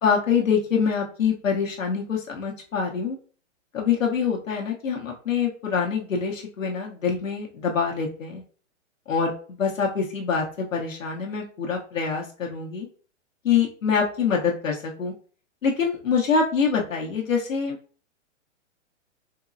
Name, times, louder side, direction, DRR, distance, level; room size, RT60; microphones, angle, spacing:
voice 1, 0.0-3.2 3.7-8.4 9.1-12.9 13.4-15.1 15.6-17.8, left 6 dB, 85° left, -1 dB, 0.9 m, -25 dB
3.7 x 2.9 x 2.5 m, 0.41 s
hypercardioid pair, 120°, 38 cm